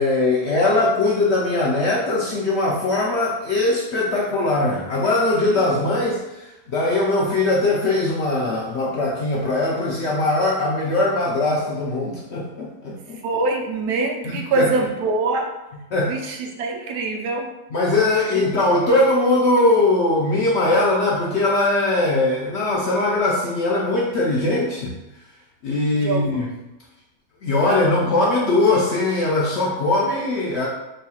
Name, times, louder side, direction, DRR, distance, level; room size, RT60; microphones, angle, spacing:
voice 1, 0.0-13.2 14.2-14.7 15.9-16.2 17.7-24.9 25.6-26.5 27.4-30.7, left 2 dB, 70° left, -3 dB, 0.6 m, -20 dB
voice 2, 13.2-15.5 16.1-17.5 18.3-18.5 25.9-26.2, right 3 dB, 80° right, 2 dB, 1.1 m, -24 dB
3.1 x 2.3 x 4.2 m, 0.97 s
omnidirectional pair, 1.7 m